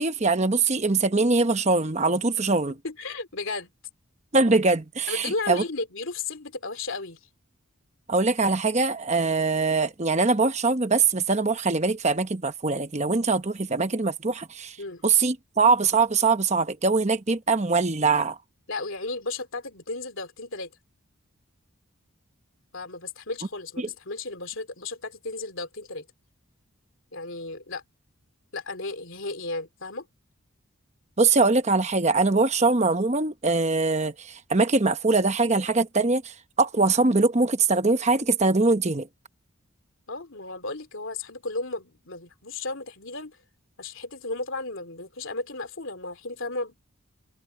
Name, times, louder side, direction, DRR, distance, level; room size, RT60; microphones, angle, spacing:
voice 1, 0.0-2.7 4.3-5.6 8.1-14.8 15.0-18.4 23.8-23.9 31.2-39.1, right 3 dB, 30° right, 1.0 m, -22 dB
voice 2, 2.8-3.7 5.1-7.2 14.8-15.0 18.7-20.7 22.7-26.1 27.1-27.8 28.5-30.1 40.1-43.4 43.8-46.8, left 3 dB, 60° left, 3.0 m, -34 dB
head